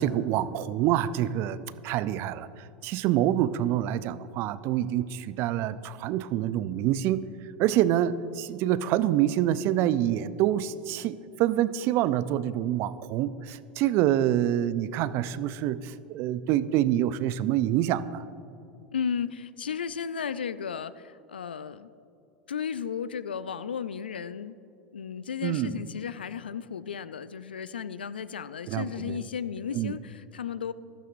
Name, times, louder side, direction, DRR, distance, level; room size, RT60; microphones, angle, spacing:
voice 1, 0.0-2.5 2.8-7.2 7.6-18.2 25.4-25.8 28.7-29.2 29.7-29.9, right 12 dB, 50° right, 16 dB, 0.4 m, -26 dB
voice 2, 18.9-21.9 22.5-24.5 24.9-30.7, left 7 dB, 85° left, 15 dB, 0.4 m, -34 dB
15.5 x 12.5 x 2.6 m, 2.8 s
hypercardioid pair, 85°, 5 cm